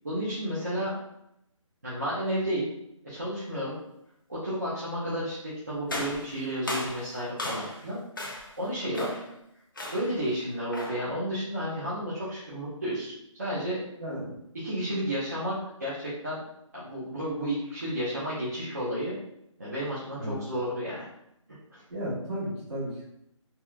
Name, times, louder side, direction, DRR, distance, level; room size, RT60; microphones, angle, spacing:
voice 1, 0.0-1.0 1.8-2.7 3.0-3.8 4.3-9.2 9.9-13.8 14.5-16.4 16.7-19.1 19.6-21.1 21.7-21.8, equal, 30° right, -10 dB, 0.5 m, -32 dB
sound 1, 5.9-7.9 8.2-8.6 8.9-9.3 9.8-10.2 10.7-11.1, left 1 dB, 40° left, 0.4 m, -36 dB
voice 2, 14.0-14.3 20.2-20.4 21.9-23.1, equal, 55° right, -7 dB, 1.4 m, -34 dB
2.8 x 2.1 x 2.2 m, 0.78 s
hypercardioid pair, 175°, 17 cm